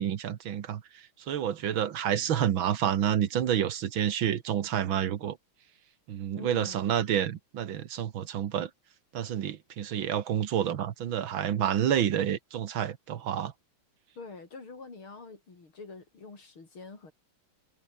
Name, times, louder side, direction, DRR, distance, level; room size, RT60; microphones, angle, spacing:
voice 1, 0.0-5.4 6.1-8.7 9.1-13.5, right 9 dB, 70° right, 1.9 m, -29 dB
voice 2, 6.3-6.9 14.2-17.1, left 4 dB, 75° left, 5.4 m, -45 dB
omnidirectional pair, 2.3 m